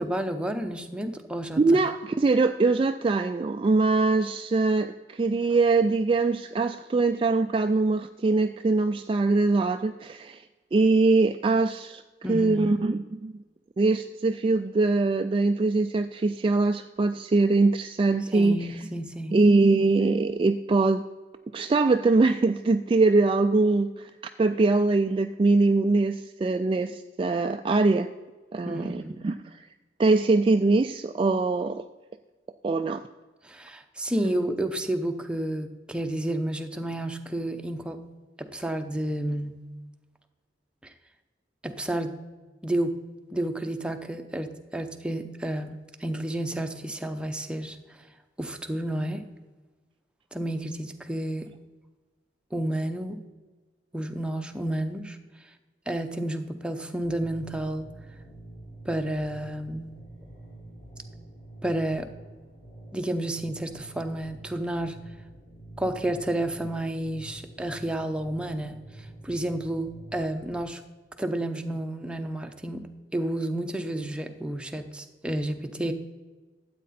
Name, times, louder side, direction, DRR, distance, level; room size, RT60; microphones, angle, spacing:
voice 1, 0.0-1.8 12.2-12.8 18.3-19.3 28.6-29.2 33.4-38.0 38.4-39.6 40.8-40.9 41.6-42.2 42.6-43.0 43.3-47.8 48.4-49.2 50.3-51.5 52.5-53.2 53.9-55.2 55.9-57.9 58.8-60.0 61.6-62.1 62.9-65.0 65.8-70.8 71.2-75.9, right 1 dB, 5° right, 6 dB, 0.7 m, -31 dB
voice 2, 1.6-10.4 10.7-12.0 12.3-13.3 13.8-18.9 19.3-21.0 21.5-24.1 24.4-28.1 28.5-29.7 30.0-31.8 32.6-33.0, right 3 dB, 30° right, 8 dB, 0.3 m, -23 dB
sound 1, 57.0-70.6, right 2 dB, 55° left, 3.1 m, -47 dB
13.0 x 8.4 x 4.2 m, 1.3 s
head